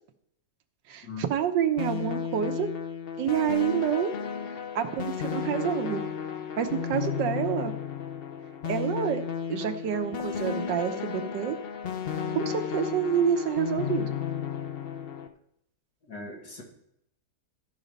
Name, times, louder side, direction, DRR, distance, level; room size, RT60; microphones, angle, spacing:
voice 1, 0.9-2.7 3.2-4.1 4.7-6.0 6.6-7.7 8.6-9.2 9.5-11.6 12.3-14.1, right 9 dB, 80° right, 7 dB, 1.5 m, -28 dB
sound 1, 1.8-15.3, left 7 dB, 60° left, 0.6 m, -33 dB
voice 2, 16.1-16.6, left 3 dB, 75° left, -2 dB, 3.1 m, -39 dB
14.5 x 5.0 x 5.3 m, 0.75 s
omnidirectional pair, 1.9 m